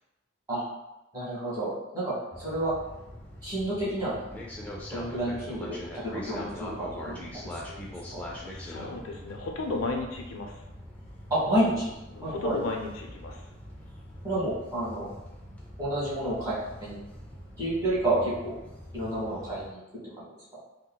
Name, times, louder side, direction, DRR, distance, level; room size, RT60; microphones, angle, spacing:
voice 1, 1.1-2.7 3.4-4.1 4.9-7.2 7.5-7.8 8.1-8.2 11.3-11.9 12.2-12.6 14.2-15.1 15.8-17.0 17.6-18.5 18.9-19.8 20.2-20.3, right 1 dB, 20° right, -10 dB, 1.3 m, -30 dB
sound 1, 2.3-19.7, left 1 dB, 5° left, 0.3 m, -43 dB
voice 2, 8.5-10.5 12.1-13.4, left 3 dB, 80° left, 2 dB, 0.4 m, -34 dB
3.7 x 2.1 x 2.2 m, 0.97 s
head